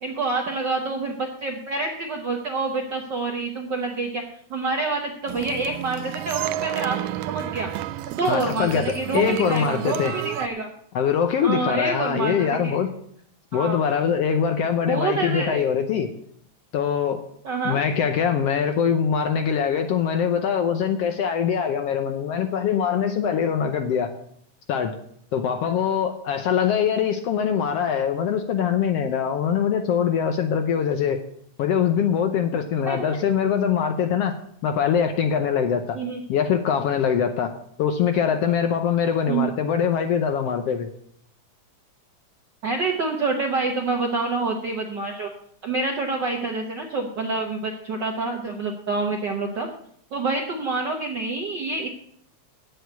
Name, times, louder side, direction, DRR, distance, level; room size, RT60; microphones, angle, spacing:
voice 1, 0.0-4.2 4.5-7.0 7.3-7.7 8.1-10.7 11.4-12.8 13.5-13.8 14.9-15.6 17.4-17.8 32.8-33.2 35.9-36.2 39.3-39.5 42.6-45.3 45.6-49.7 50.1-51.9, right 3 dB, 65° right, 2 dB, 1.1 m, -27 dB
sound 1, 5.3-10.5, right 13 dB, 80° right, 1.8 m, -31 dB
voice 2, 8.3-10.1 10.9-12.9 13.5-16.1 16.7-17.2 17.6-24.1 24.7-24.9 25.3-31.2 31.6-34.3 34.6-36.0 36.3-37.5 37.8-40.9, left 7 dB, 70° left, 7 dB, 1.5 m, -23 dB
8.7 x 7.8 x 8.1 m, 0.67 s
omnidirectional pair, 3.4 m